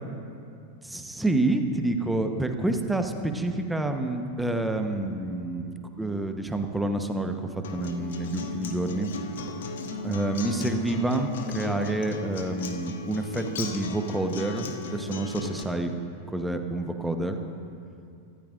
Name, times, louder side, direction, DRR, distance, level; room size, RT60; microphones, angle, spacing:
voice 1, 0.8-9.1 10.0-15.9 16.3-17.4, right 2 dB, 5° right, 6 dB, 1.0 m, -28 dB
Acoustic guitar, 7.6-15.6, left 4 dB, 60° left, 1.1 m, -36 dB
23.5 x 13.5 x 2.6 m, 2.5 s
figure-of-eight pair, 90°, 0 cm